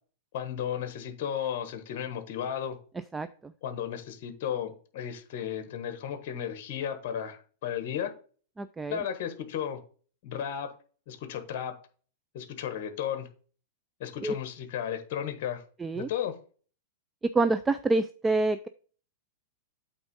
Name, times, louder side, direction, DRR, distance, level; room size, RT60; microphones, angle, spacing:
voice 1, 0.3-2.8 3.6-8.1 8.9-9.8 10.2-10.7 11.1-11.7 12.3-13.3 14.0-15.6 15.9-16.4, left 9 dB, 55° left, 7 dB, 1.3 m, -34 dB
voice 2, 3.1-3.5 8.6-9.0 14.2-14.4 15.8-16.1 17.3-18.7, right 3 dB, 10° right, 11 dB, 0.4 m, -27 dB
8.5 x 3.6 x 5.3 m, 0.41 s
hypercardioid pair, 135°, 0 cm